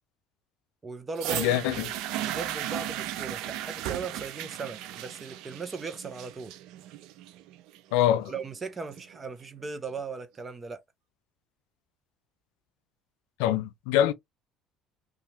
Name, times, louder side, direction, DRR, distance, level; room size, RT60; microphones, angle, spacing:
voice 1, 0.8-1.6 2.2-6.5 8.3-10.8, right 4 dB, 30° right, 0.7 m, -38 dB
sound 1, 1.2-9.2 10.0-10.1, right 12 dB, 75° right, 0.4 m, -36 dB
voice 2, 1.3-1.9 7.9-8.3 13.4-14.1, left 11 dB, 85° left, 0.4 m, -24 dB
2.8 x 2.4 x 2.7 m
supercardioid pair, 80°, 0 cm